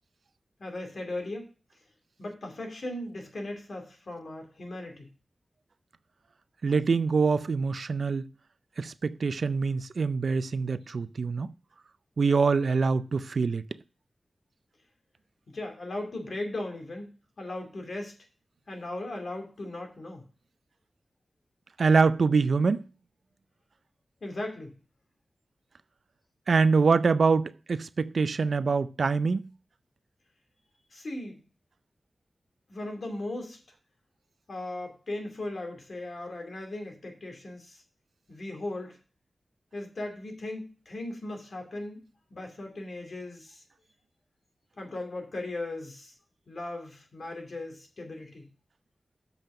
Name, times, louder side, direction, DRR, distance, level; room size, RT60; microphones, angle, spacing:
voice 1, 0.6-1.4 2.2-5.1 15.5-17.1 17.4-18.1 18.7-20.3 24.2-24.7 30.9-31.4 32.7-33.6 34.5-37.8 38.3-39.0 39.7-42.0 42.3-43.6 44.8-46.1 46.5-48.5, left 2 dB, 65° left, 2.6 m, -37 dB
voice 2, 6.6-8.2 8.8-11.5 12.2-13.6 21.8-22.8 26.5-29.5, right 4 dB, 70° right, 0.4 m, -24 dB
7.5 x 5.4 x 5.5 m
wide cardioid pair, 70°, 0 cm